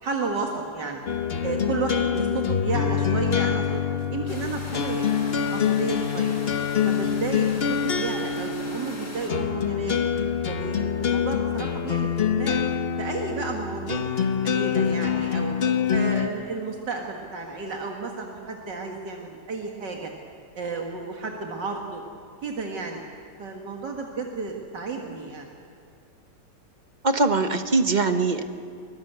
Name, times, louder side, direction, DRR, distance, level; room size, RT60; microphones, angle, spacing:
voice 1, 0.0-1.0 1.4-3.8 4.1-5.1 5.5-6.4 6.8-10.0 10.5-12.6 13.0-14.0 14.4-15.5 15.9-20.1 20.6-22.0 22.4-23.0 23.4-25.5, right 4 dB, 75° right, 1 dB, 2.4 m, -32 dB
sound 1, 1.1-16.3, left 7 dB, 40° left, 1.0 m, -25 dB
sound 2, 4.3-9.3, left 1 dB, 70° left, 4.6 m, -40 dB
voice 2, 27.0-28.4, right 3 dB, 30° right, 8 dB, 0.9 m, -22 dB
23.5 x 22.0 x 8.1 m, 2.4 s
omnidirectional pair, 1.9 m